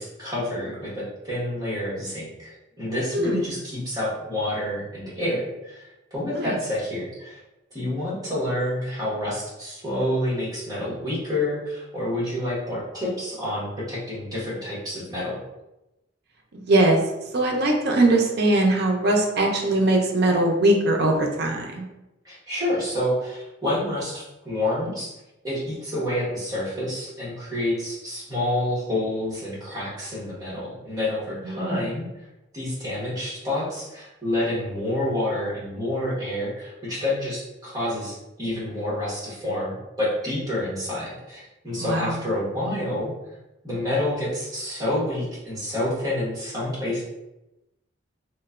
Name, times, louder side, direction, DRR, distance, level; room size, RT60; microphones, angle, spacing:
voice 1, 0.0-5.8 6.1-7.4 7.7-15.4 22.2-25.1 25.4-32.0 32.5-43.1 43.6-47.0, left 1 dB, 20° right, -8 dB, 1.0 m, -28 dB
voice 2, 3.1-3.4 6.3-6.6 16.7-17.0 17.3-21.8 31.5-31.9 41.8-42.2, right 2 dB, 55° right, 1 dB, 0.5 m, -21 dB
3.0 x 2.1 x 2.4 m, 0.94 s
head